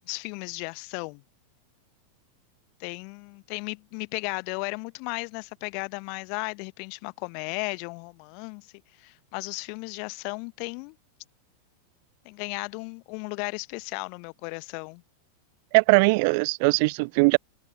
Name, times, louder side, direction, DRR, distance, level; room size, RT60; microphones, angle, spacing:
voice 1, 0.1-1.2 2.8-8.7 9.0-11.0 12.2-15.0, left 39 dB, 45° left, 1.0 m, -35 dB
voice 2, 15.7-17.4, right 30 dB, 45° right, 0.5 m, -20 dB
figure-of-eight pair, 90°, 0 cm